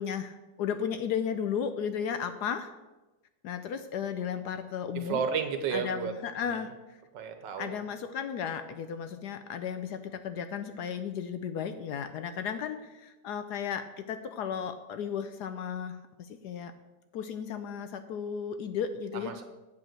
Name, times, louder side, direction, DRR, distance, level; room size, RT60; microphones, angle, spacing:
voice 1, 0.0-2.7 3.4-5.2 5.7-7.0 7.6-16.7 17.1-19.3, left 7 dB, 70° left, 9 dB, 1.0 m, -34 dB
voice 2, 5.0-6.1 6.4-6.6 7.1-7.8 19.1-19.4, right 6 dB, 70° right, 7 dB, 1.6 m, -32 dB
8.5 x 5.3 x 7.5 m, 1.1 s
omnidirectional pair, 2.0 m